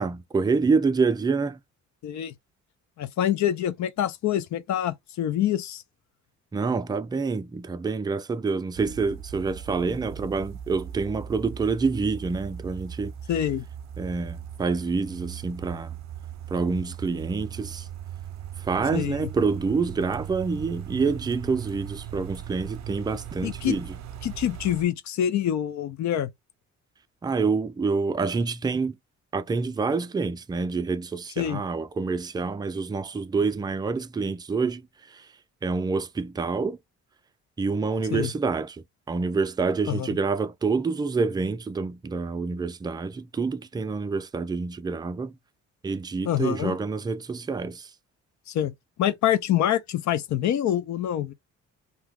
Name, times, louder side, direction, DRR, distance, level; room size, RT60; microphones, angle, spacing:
voice 1, 0.0-1.6 6.5-13.1 14.0-16.0 16.5-17.9 18.6-23.9 27.2-29.0 29.3-35.3 35.6-36.8 37.6-45.3 45.8-47.9, right 4 dB, 15° right, 0.4 m, -27 dB
voice 2, 2.0-2.3 3.0-5.8 13.3-13.6 18.9-19.3 23.4-23.8 24.2-26.3 31.4-31.6 38.1-38.3 39.9-40.2 46.2-46.7 48.5-48.7 49.0-51.3, left 11 dB, 65° left, 0.6 m, -26 dB
sound 1, 8.7-24.9, right 9 dB, 65° right, 0.7 m, -39 dB
2.8 x 2.2 x 3.5 m
cardioid pair, 90°, 30 cm